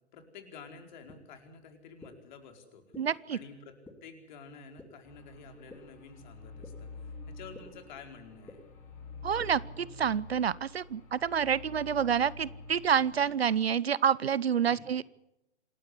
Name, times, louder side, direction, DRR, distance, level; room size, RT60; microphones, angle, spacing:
voice 1, 0.1-2.8 3.3-3.7 4.0-8.7 14.7-14.9, left 5 dB, 45° left, 5 dB, 4.8 m, -50 dB
sound 1, 1.1-1.2 2.0-2.1 2.9-3.0 3.9-4.0 4.8-4.9 5.7-5.8 6.6-6.7 7.5-7.6 8.5-8.6 9.4-9.5, left 3 dB, 5° left, 2.7 m, -47 dB
voice 2, 3.0-3.4 9.2-15.0, right 8 dB, 65° right, 22 dB, 0.9 m, -28 dB
sound 2, 5.0-13.7, left 3 dB, 20° left, 5.0 m, -47 dB
27.5 x 12.5 x 9.9 m, 0.86 s
figure-of-eight pair, 120°, 33 cm